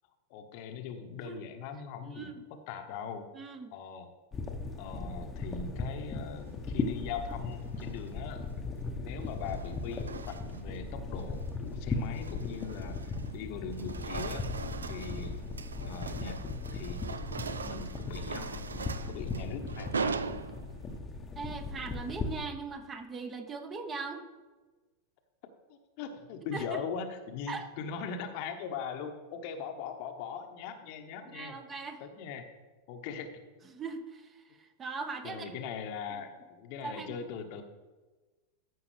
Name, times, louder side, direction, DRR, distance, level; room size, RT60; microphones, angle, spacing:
voice 1, 0.3-3.3 3.7-4.1 4.8-8.4 9.0-14.5 14.9-15.5 15.8-16.4 16.7-17.0 17.4-20.2 25.7-31.6 32.0-32.5 32.9-33.3 35.2-37.6, left 6 dB, 45° left, 6 dB, 0.9 m, -40 dB
voice 2, 2.0-2.4 3.3-3.7 21.4-24.2 26.5-26.8 27.5-27.6 31.2-32.0 33.7-35.5 36.1-36.2 36.8-37.1, right 4 dB, 20° right, 6 dB, 0.9 m, -40 dB
sound 1, 4.3-22.5, left 3 dB, 20° left, 0.9 m, -38 dB
sound 2, 7.6-8.1 9.2-10.8 11.2-11.5 12.0-13.4 13.7-21.0, right 5 dB, 75° right, 0.4 m, -40 dB
14.0 x 5.7 x 3.2 m, 1.2 s
figure-of-eight pair, 90°, 0 cm